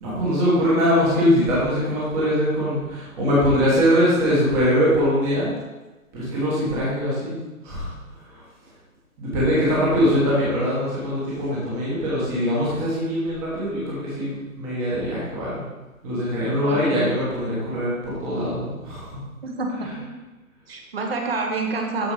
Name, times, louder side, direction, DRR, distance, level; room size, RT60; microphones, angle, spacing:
voice 1, 0.0-5.5 6.1-7.3 7.6-7.9 8.3-8.4 9.2-15.6 16.0-19.2, equal, 5° right, -7 dB, 1.3 m, -22 dB
voice 2, 16.6-17.1 19.4-20.1 20.7-22.1, right 3 dB, 45° right, 2 dB, 1.6 m, -28 dB
13.0 x 4.5 x 4.9 m, 1.2 s
hypercardioid pair, 170°, 43 cm